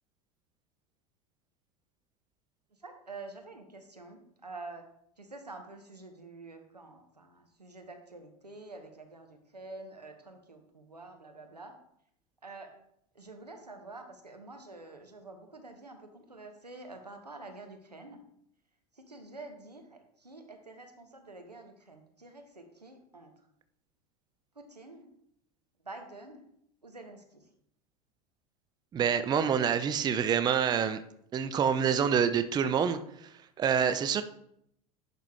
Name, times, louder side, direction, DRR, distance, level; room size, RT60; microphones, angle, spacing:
voice 1, 2.7-4.9 5.2-11.8 12.4-12.8 13.1-18.2 18.9-23.3 24.5-25.1 25.8-26.4 26.8-27.5, right 2 dB, 90° right, 4 dB, 1.1 m, -48 dB
voice 2, 28.9-31.0 31.3-33.3 33.6-34.2, right 7 dB, 20° right, 11 dB, 0.5 m, -27 dB
10.5 x 4.2 x 3.4 m, 0.71 s
figure-of-eight pair, 80°, 20 cm